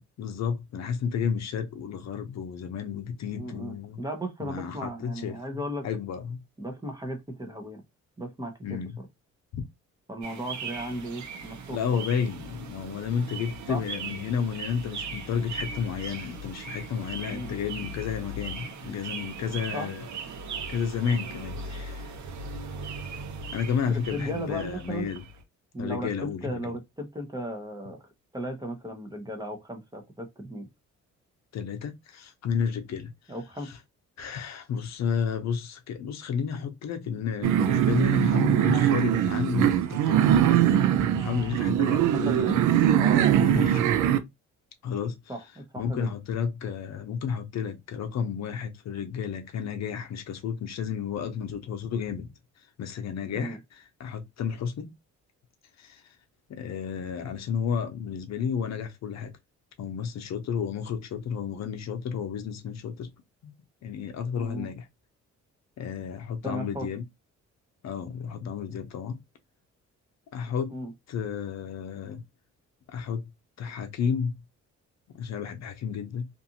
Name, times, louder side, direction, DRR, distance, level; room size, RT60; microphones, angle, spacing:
voice 1, 0.0-4.0 4.4-5.4 5.8-6.4 8.6-9.0 9.5-9.6 11.7-20.0 20.7-22.1 23.5-25.2 25.8-26.7 31.5-33.1 33.6-33.8 34.2-42.5 43.4-43.8 44.8-45.2 45.8-52.3 52.8-54.9 55.8-56.0 56.5-59.3 59.8-63.1 63.4-63.5 63.8-64.9 65.8-67.0 67.8-69.2 70.3-70.7 71.1-72.2 72.9-73.3 73.6-74.4 75.2-76.3, left 7 dB, 60° left, 0.6 m, -32 dB
voice 2, 3.3-5.9 6.6-7.8 8.2-8.9 10.1-12.1 13.7-13.8 17.3-17.5 19.7-19.9 23.9-25.1 25.7-28.0 28.3-30.7 33.3-33.7 41.9-42.6 43.0-43.9 45.3-46.1 53.3-53.6 64.3-64.7 66.4-66.9 70.7-70.9, right 1 dB, 15° right, 0.8 m, -36 dB
sound 1, 10.2-25.4, right 3 dB, 70° right, 0.8 m, -39 dB
sound 2, 37.4-44.2, right 10 dB, 85° right, 0.5 m, -22 dB
2.6 x 2.4 x 2.7 m
cardioid pair, 90°, 30 cm